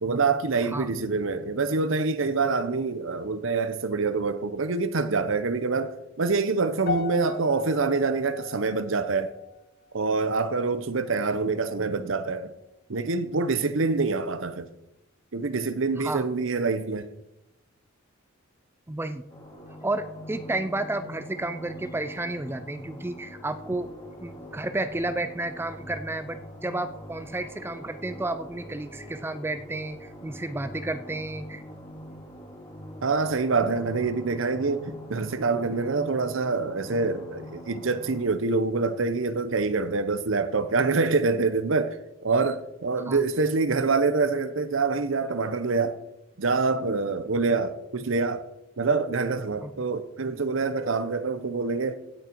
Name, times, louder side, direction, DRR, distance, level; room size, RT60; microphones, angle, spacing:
voice 1, 0.0-9.3 9.9-12.5 12.9-14.7 15.3-17.1 33.0-46.0 46.4-48.5 48.8-52.0, right 4 dB, 65° right, 0.8 m, -26 dB
sound 1, 6.9-11.2 11.5-11.9 12.5-12.6, left 4 dB, 50° left, 0.9 m, -38 dB
voice 2, 18.9-19.2 19.8-23.9 24.2-31.6 43.1-43.2 49.6-49.7, right 2 dB, 10° right, 0.4 m, -32 dB
sound 2, 19.3-38.2, equal, 20° left, 2.3 m, -43 dB
16.5 x 6.6 x 4.5 m
head